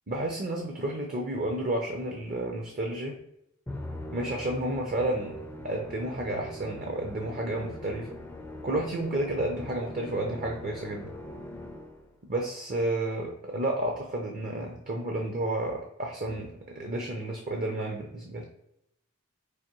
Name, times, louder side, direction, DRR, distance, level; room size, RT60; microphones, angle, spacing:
voice 1, 0.1-3.2 4.1-8.1 8.6-11.1 12.3-18.4, right 1 dB, 45° right, 1 dB, 0.6 m, -31 dB
Musical instrument, 3.7-12.1, left 1 dB, 10° left, 0.3 m, -41 dB
4.8 x 2.6 x 2.9 m, 0.78 s
head